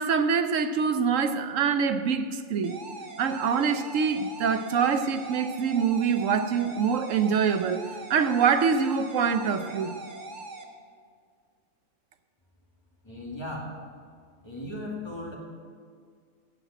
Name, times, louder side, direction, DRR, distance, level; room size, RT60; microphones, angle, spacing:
voice 1, 0.0-2.8 3.2-9.9, right 6 dB, 70° right, 1.1 m, -25 dB
sound 1, 2.6-10.6, right 2 dB, 40° right, 1.1 m, -41 dB
voice 2, 13.0-13.8 14.4-15.4, left 1 dB, 20° left, 2.5 m, -36 dB
16.5 x 5.7 x 8.1 m
omnidirectional pair, 1.4 m